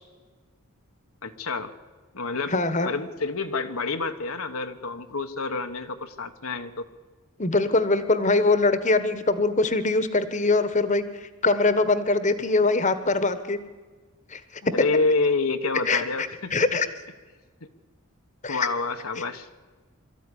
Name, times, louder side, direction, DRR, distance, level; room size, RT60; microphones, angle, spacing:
voice 1, 1.2-1.7 2.1-2.6 2.8-6.9 14.7-16.7 18.5-19.5, left 3 dB, 75° left, 6 dB, 1.3 m, -28 dB
voice 2, 2.5-2.9 7.4-11.0 11.4-13.6 14.3-14.4 15.9-16.9 18.4-18.7, left 3 dB, 35° left, 12 dB, 1.3 m, -22 dB
23.0 x 14.0 x 9.9 m, 1.4 s
head